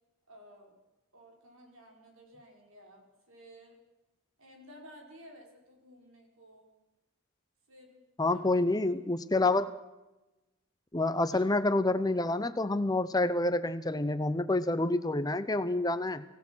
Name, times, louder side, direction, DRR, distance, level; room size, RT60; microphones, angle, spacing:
voice 1, 0.3-0.8 1.1-3.8 4.4-6.7 7.7-9.1 11.3-11.5, equal, 70° right, 1 dB, 5.5 m, -55 dB
voice 2, 8.2-9.7 10.9-16.2, left 2 dB, 15° left, 12 dB, 0.7 m, -28 dB
25.0 x 17.0 x 6.4 m, 1.0 s
head